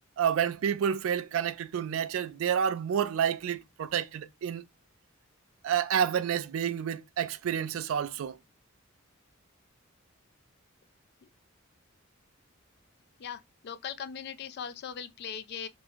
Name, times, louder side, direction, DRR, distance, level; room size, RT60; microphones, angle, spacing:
voice 1, 0.2-4.6 5.6-8.4, right 8 dB, 70° right, 0.3 m, -29 dB
voice 2, 13.2-15.7, left 7 dB, 50° left, 0.3 m, -39 dB
3.5 x 2.0 x 2.9 m
head